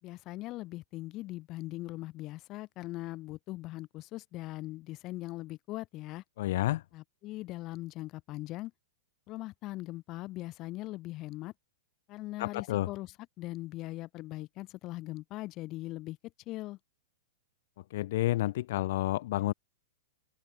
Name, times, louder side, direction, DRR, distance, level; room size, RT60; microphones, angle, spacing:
voice 1, 0.0-6.2 6.9-8.7 9.3-11.5 12.1-16.2 16.5-16.8, left 18 dB, 40° left, 6.5 m, -40 dB
voice 2, 6.4-6.8 12.4-12.9 17.9-19.5, left 16 dB, 60° left, 1.5 m, -30 dB
hypercardioid pair, 120°, 0 cm